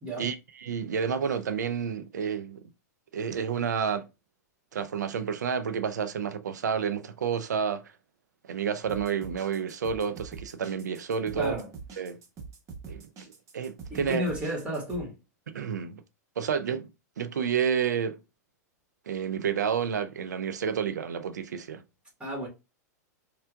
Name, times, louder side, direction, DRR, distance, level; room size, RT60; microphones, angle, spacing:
voice 1, 0.2-2.6 3.1-4.1 4.7-7.8 8.5-11.6 12.0-12.2 12.9-13.1 13.5-14.2 15.5-16.0 16.4-16.9 17.2-18.2 19.1-21.8, right 7 dB, 85° right, 0.5 m, -30 dB
sound 1, 8.8-15.0, right 5 dB, 35° right, 1.1 m, -44 dB
voice 2, 11.3-11.7 13.9-15.2 22.2-22.5, equal, 10° right, 1.8 m, -32 dB
4.4 x 2.5 x 2.3 m
hypercardioid pair, 110°, 9 cm